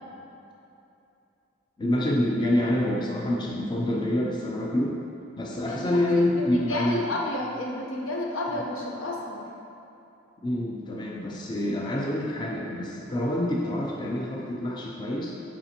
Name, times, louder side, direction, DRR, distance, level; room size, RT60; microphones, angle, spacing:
voice 1, 1.8-5.0 5.4-7.1 8.5-8.6 10.4-15.4, left 1 dB, 20° left, -2 dB, 0.4 m, -27 dB
voice 2, 5.7-9.4, left 1 dB, 80° left, -2 dB, 0.9 m, -31 dB
6.9 x 5.0 x 2.9 m, 2.8 s
head